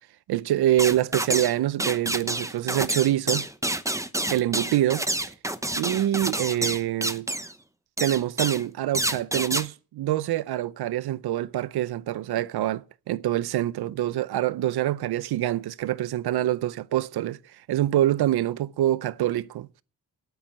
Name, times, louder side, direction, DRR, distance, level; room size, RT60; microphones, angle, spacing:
voice 1, 0.3-3.5 4.3-5.0 5.7-7.3 8.0-17.4 17.7-19.7, right 13 dB, 85° right, 0.6 m, -25 dB
sound 1, 0.8-1.5 1.8-7.5 8.0-8.6 8.9-9.7, right 1 dB, 10° right, 0.9 m, -28 dB
8.9 x 8.9 x 7.7 m
cardioid pair, 65°, 38 cm